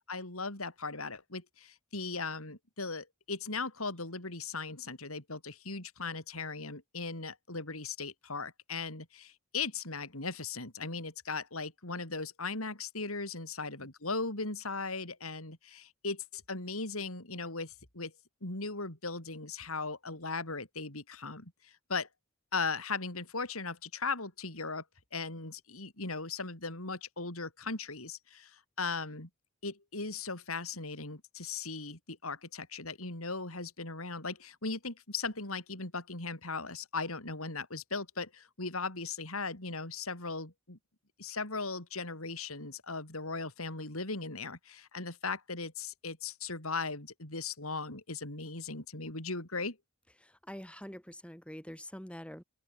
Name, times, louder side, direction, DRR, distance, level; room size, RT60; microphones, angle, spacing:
voice 1, 0.1-18.1 18.4-22.1 22.5-24.8 25.1-29.3 29.6-40.8 41.2-49.8, left 4 dB, 85° left, 5.5 m, -38 dB
voice 2, 50.2-52.4, equal, 5° left, 5.5 m, -45 dB
open air
head